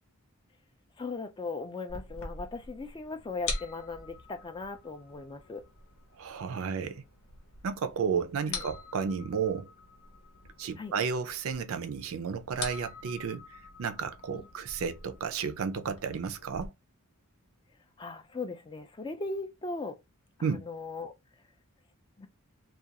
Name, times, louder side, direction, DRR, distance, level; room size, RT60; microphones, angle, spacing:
voice 1, 1.0-5.6 8.5-8.6 10.8-10.9 14.3-14.5 18.0-20.0 20.4-21.1 22.2-22.3, left 3 dB, 20° left, 0.3 m, -38 dB
sound 1, 1.9-16.7, left 3 dB, 75° left, 0.8 m, -44 dB
voice 2, 6.2-7.0 7.6-9.7 10.6-16.7 20.4-20.6, right 6 dB, 70° right, 0.4 m, -32 dB
2.4 x 2.3 x 2.7 m
head